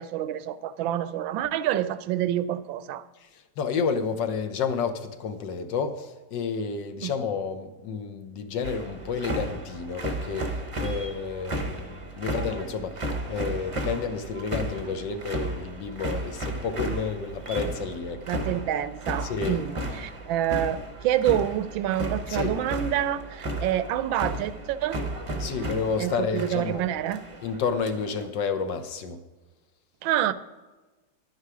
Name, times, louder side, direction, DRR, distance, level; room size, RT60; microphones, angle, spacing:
voice 1, 0.0-3.0 7.0-7.1 18.3-25.0 26.0-27.2 30.0-30.3, right 11 dB, 85° right, 15 dB, 1.3 m, -27 dB
voice 2, 3.2-18.4 19.2-19.6 22.3-22.5 25.4-26.9 27.4-29.2, left 5 dB, 70° left, 8 dB, 1.5 m, -30 dB
sound 1, 8.6-28.3, right 1 dB, 30° right, 0.6 m, -34 dB
11.0 x 9.4 x 4.8 m, 1.2 s
omnidirectional pair, 2.1 m